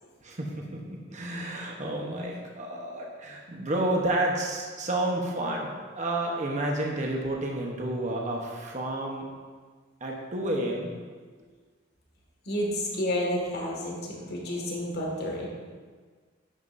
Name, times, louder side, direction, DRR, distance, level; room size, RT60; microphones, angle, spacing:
voice 1, 0.2-9.3 10.0-10.9, right 1 dB, 35° right, -1 dB, 1.0 m, -30 dB
voice 2, 12.4-15.5, left 1 dB, 55° left, -2 dB, 2.1 m, -30 dB
11.0 x 8.8 x 2.7 m, 1.5 s
head